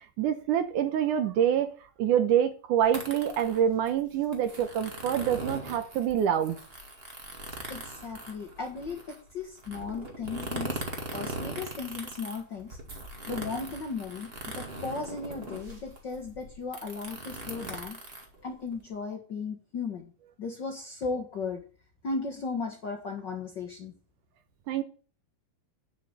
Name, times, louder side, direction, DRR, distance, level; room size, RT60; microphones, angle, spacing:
voice 1, 0.2-1.7 2.0-6.6 24.7-24.8, right 9 dB, 70° right, 2.1 m, -26 dB
sound 1, 2.8-18.9, right 2 dB, 25° right, 1.3 m, -40 dB
voice 2, 7.7-10.8 11.1-12.8 13.3-18.0 18.4-20.1 20.4-21.6 22.0-23.9, left 4 dB, 85° left, 0.9 m, -36 dB
9.1 x 6.7 x 7.3 m
omnidirectional pair, 4.5 m